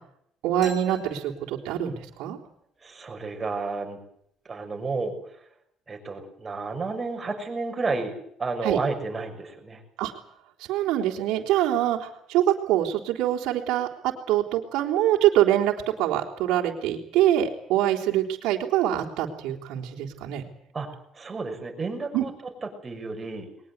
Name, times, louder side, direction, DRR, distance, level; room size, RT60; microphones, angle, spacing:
voice 1, 0.4-2.4 8.6-8.8 10.0-10.1 10.6-20.4 22.1-22.3, right 12 dB, 85° right, 1 dB, 3.7 m, -24 dB
sound 1, 0.6-2.3, equal, 25° left, 6.2 m, -45 dB
voice 2, 2.8-4.0 4.4-5.1 5.9-8.1 8.4-9.8 20.7-20.9 21.1-22.3 22.8-23.5, right 3 dB, 20° right, 4 dB, 6.3 m, -31 dB
22.0 x 20.5 x 8.2 m, 0.71 s
cardioid pair, 135°, 0 cm